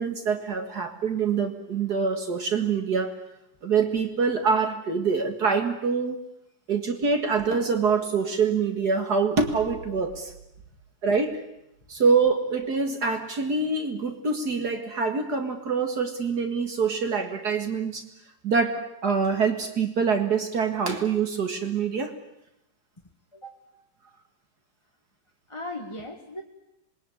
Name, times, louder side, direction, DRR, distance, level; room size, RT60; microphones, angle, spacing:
voice 1, 0.0-3.2 3.6-6.2 6.7-10.3 11.0-11.4 11.9-18.0 18.4-22.1, right 5 dB, 65° right, 6 dB, 2.5 m, -25 dB
voice 2, 23.3-23.6 25.5-26.4, left 1 dB, 15° left, 2 dB, 1.8 m, -37 dB
26.5 x 21.5 x 9.7 m, 0.85 s
omnidirectional pair, 1.9 m